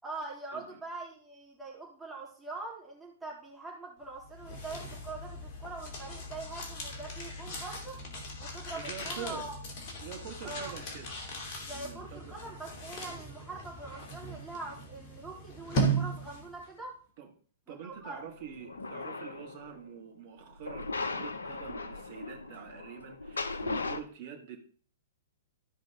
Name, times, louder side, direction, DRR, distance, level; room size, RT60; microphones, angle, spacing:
voice 1, 0.0-7.9 8.4-9.5 10.4-10.7 11.7-17.0 17.7-18.2, right 3 dB, 5° right, 3.9 m, -43 dB
sound 1, 4.1-16.7, right 2 dB, 40° left, 2.9 m, -38 dB
voice 2, 8.7-9.5 10.0-11.1 11.7-12.4 17.2-17.3 17.7-24.6, right 8 dB, 45° right, 2.4 m, -45 dB
sound 2, 18.3-19.8 20.6-24.0, left 3 dB, 75° left, 0.9 m, -38 dB
14.5 x 5.2 x 3.9 m
figure-of-eight pair, 110°, 0 cm